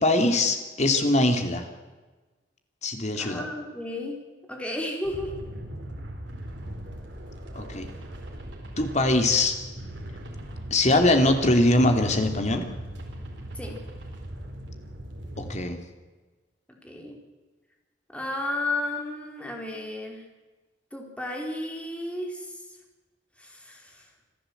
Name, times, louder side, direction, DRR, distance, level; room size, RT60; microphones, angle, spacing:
voice 1, 0.0-1.7 2.8-3.4 7.5-7.9 8.8-9.6 10.7-12.7 15.4-15.8, left 2 dB, 40° left, 6 dB, 2.9 m, -22 dB
voice 2, 3.2-4.2 4.5-5.3 13.5-13.8 16.8-17.2 18.1-20.2 20.9-22.6 23.4-24.1, left 2 dB, 5° left, 1 dB, 4.3 m, -33 dB
sound 1, 5.0-15.6, right 1 dB, 75° right, 4.3 m, -39 dB
26.5 x 14.5 x 8.0 m, 1.3 s
head